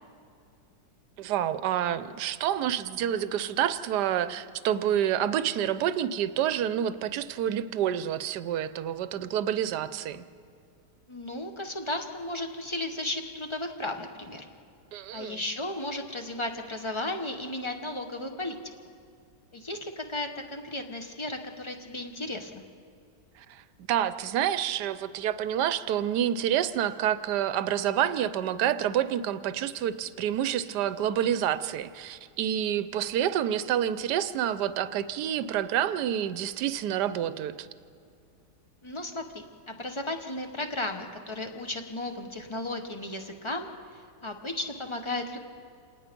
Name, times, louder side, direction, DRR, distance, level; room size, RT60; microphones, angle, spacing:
voice 1, 1.2-10.2 14.9-15.4 23.4-23.6 23.9-37.7, right 10 dB, 70° right, 13 dB, 1.2 m, -28 dB
voice 2, 11.1-14.4 15.1-18.6 19.5-22.6 38.8-43.7 44.2-45.4, left 1 dB, 20° left, 5 dB, 1.0 m, -34 dB
27.0 x 19.0 x 5.2 m, 2.4 s
omnidirectional pair, 1.9 m